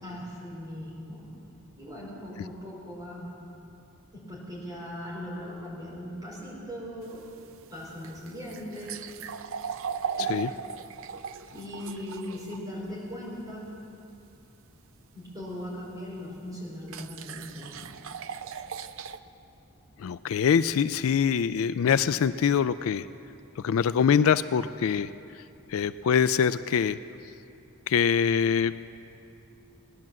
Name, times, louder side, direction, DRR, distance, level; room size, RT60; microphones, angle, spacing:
voice 1, 0.0-1.2 1.8-3.3 4.1-7.2 7.7-9.0 10.2-10.3 11.5-13.7 15.1-17.8, left 1 dB, 15° right, -5 dB, 4.4 m, -39 dB
sound 1, 7.0-12.6 15.7-15.8 16.9-19.2, right 7 dB, 60° right, 0.5 m, -37 dB
voice 2, 10.2-10.5 20.0-23.1 23.6-25.1 25.7-27.0 27.9-28.7, left 7 dB, 65° left, 14 dB, 0.3 m, -24 dB
18.0 x 11.0 x 7.5 m, 2.8 s
head